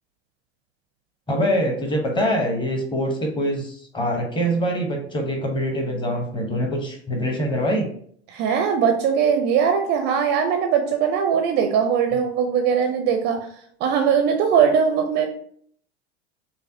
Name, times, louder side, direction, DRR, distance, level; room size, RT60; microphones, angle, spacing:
voice 1, 1.3-7.9, equal, 15° left, 3 dB, 0.9 m, -24 dB
voice 2, 8.3-13.4 13.8-15.2, right 7 dB, 35° right, 5 dB, 0.4 m, -20 dB
5.3 x 2.2 x 2.7 m, 0.62 s
figure-of-eight pair, 85°, 33 cm